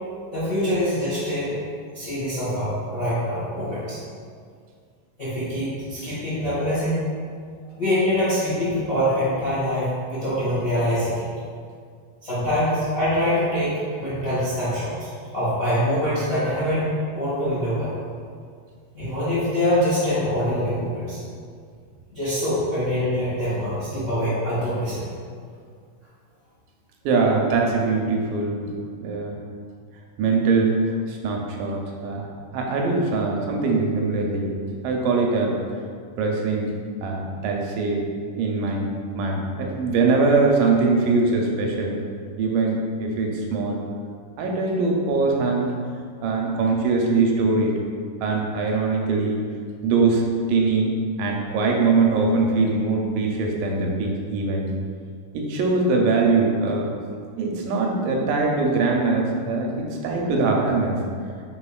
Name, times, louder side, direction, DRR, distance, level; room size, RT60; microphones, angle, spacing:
voice 1, 0.3-1.6 1.9-4.0 5.2-7.0 7.8-11.3 12.2-15.1 15.3-17.9 18.9-21.2 22.1-25.0, equal, 65° left, -12 dB, 0.6 m, -24 dB
voice 2, 27.1-28.7 29.0-29.4 30.2-30.7 31.1-32.3 32.5-34.5 34.8-35.5 36.2-36.7 37.0-38.0 38.4-38.9 39.1-42.0 42.4-43.8 44.4-45.8 46.2-47.8 48.2-49.4 49.8-50.2 50.5-50.9 51.2-54.7 55.3-56.9 57.4-61.0, right 3 dB, 85° right, 0 dB, 2.1 m, -22 dB
5.0 x 3.6 x 2.3 m, 2.1 s
omnidirectional pair, 3.9 m